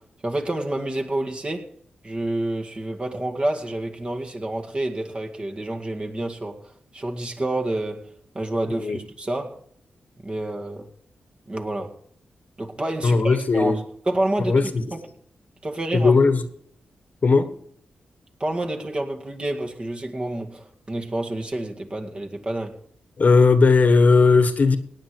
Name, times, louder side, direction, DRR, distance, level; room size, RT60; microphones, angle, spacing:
voice 1, 0.2-1.7 2.0-6.6 6.9-8.1 8.3-9.6 10.2-10.9 11.5-12.0 12.6-15.0 15.6-16.1 18.4-22.8, right 1 dB, 30° right, 2 dB, 2.0 m, -28 dB
voice 2, 13.0-13.8 14.4-14.8 15.9-16.4 17.2-17.5 23.2-24.8, left 4 dB, 55° left, 10 dB, 1.5 m, -17 dB
17.5 x 8.7 x 4.7 m, 0.65 s
cardioid pair, 65°, 3 cm